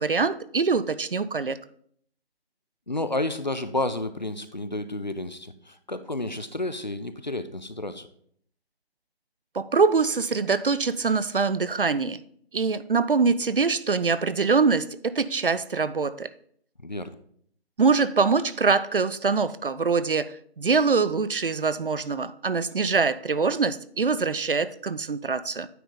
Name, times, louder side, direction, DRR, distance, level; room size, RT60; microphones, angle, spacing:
voice 1, 0.0-1.6 9.5-12.2 12.5-16.3 17.8-25.7, right 4 dB, 60° right, 15 dB, 0.4 m, -24 dB
voice 2, 2.9-8.1 16.8-17.1, left 2 dB, 45° left, 11 dB, 0.4 m, -31 dB
9.1 x 4.2 x 3.7 m, 0.63 s
figure-of-eight pair, 175°, 32 cm